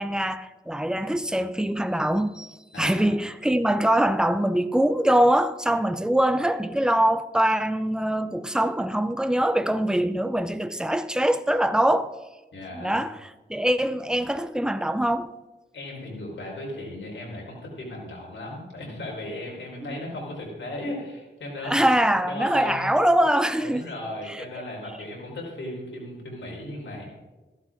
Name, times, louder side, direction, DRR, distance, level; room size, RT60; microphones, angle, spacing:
voice 1, 0.0-12.1 12.7-15.3 19.8-20.0 21.6-23.9 24.3-24.4, right 1 dB, 5° right, 0.6 m, -23 dB
voice 2, 2.7-3.2 12.5-13.0 15.7-21.8 22.3-22.9 23.6-27.0, left 1 dB, 80° left, 4.2 m, -36 dB
14.0 x 12.0 x 3.8 m
wide cardioid pair, 100°, 19 cm